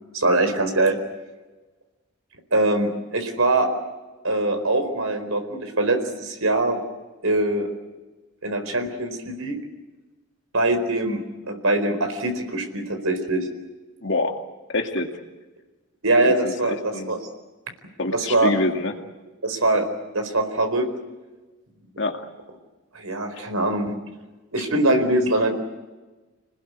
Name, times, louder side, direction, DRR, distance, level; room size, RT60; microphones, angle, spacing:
voice 1, 0.1-1.0 2.5-3.7 4.2-6.8 7.2-7.7 8.4-9.6 10.5-13.5 16.0-17.2 18.1-18.5 19.4-19.8 20.1-20.9 22.9-24.0 24.5-25.5, right 2 dB, 75° right, 6 dB, 4.4 m, -22 dB
voice 2, 14.0-14.4 14.7-15.1 16.3-17.1 18.0-18.9 22.0-22.3, left 2 dB, 55° left, 4 dB, 2.4 m, -26 dB
27.5 x 20.0 x 8.4 m, 1.2 s
head